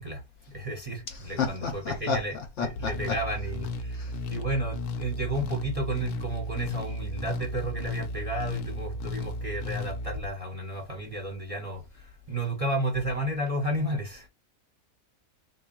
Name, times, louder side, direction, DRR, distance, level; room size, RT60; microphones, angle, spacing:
voice 1, 0.0-2.4 2.6-14.3, right 1 dB, 30° right, 0.8 m, -32 dB
voice 2, 1.4-2.9 3.9-4.1, left 6 dB, 60° left, 1.0 m, -31 dB
sound 1, 2.8-10.3, left 1 dB, 90° left, 1.1 m, -34 dB
3.6 x 2.3 x 3.7 m
omnidirectional pair, 1.6 m